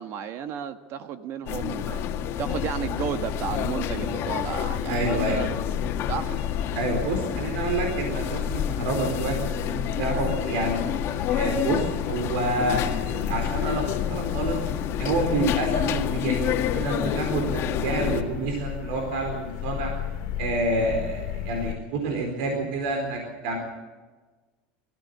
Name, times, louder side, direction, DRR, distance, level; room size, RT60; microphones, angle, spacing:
voice 1, 0.0-2.1 2.4-5.5 6.1-6.4, right 8 dB, 55° right, 9 dB, 1.3 m, -33 dB
sound 1, 1.5-18.2, left 9 dB, 50° left, 1.7 m, -29 dB
sound 2, 2.4-21.8, left 11 dB, 70° left, 1.9 m, -35 dB
voice 2, 4.9-5.5 6.7-11.0 11.3-14.6 15.0-19.9 20.4-23.6, right 2 dB, 80° right, 3 dB, 4.3 m, -28 dB
21.5 x 15.5 x 8.3 m, 1.3 s
supercardioid pair, 110°, 5 cm